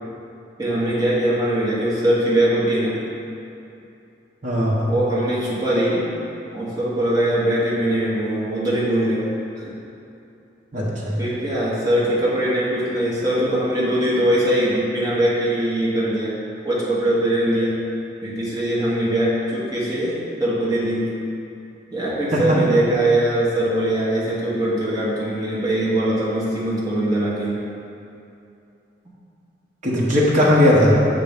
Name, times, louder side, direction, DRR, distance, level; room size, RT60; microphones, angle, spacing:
voice 1, 0.6-3.0 4.9-6.1 6.5-9.3 9.6-9.7 11.2-16.3 16.6-17.7 18.2-21.1 21.9-27.6, right 1 dB, 20° right, -8 dB, 1.3 m, -21 dB
voice 2, 4.4-4.9 10.7-11.2 22.3-22.6 29.8-31.0, left 1 dB, 40° right, -6 dB, 1.1 m, -18 dB
6.7 x 3.8 x 5.1 m, 2.7 s
head